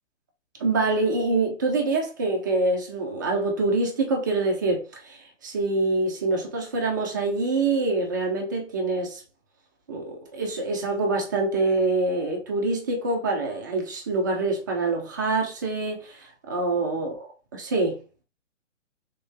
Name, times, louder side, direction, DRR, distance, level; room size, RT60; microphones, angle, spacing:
voice 1, 0.6-9.2 9.9-17.1 17.5-18.0, right 3 dB, 15° right, 0.4 m, -25 dB
3.5 x 2.5 x 3.6 m
figure-of-eight pair, 130°, 38 cm